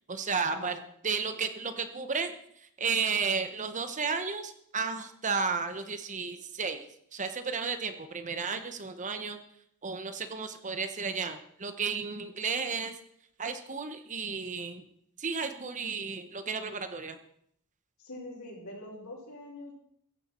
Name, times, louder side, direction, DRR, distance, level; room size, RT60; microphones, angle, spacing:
voice 1, 0.1-0.8 1.0-2.3 2.8-6.9 7.1-9.4 9.8-13.0 13.4-14.8 15.2-17.2, right 5 dB, 35° right, 9 dB, 1.0 m, -33 dB
voice 2, 18.0-19.7, left 1 dB, 85° left, -7 dB, 5.3 m, -43 dB
15.5 x 15.0 x 4.4 m, 0.69 s
head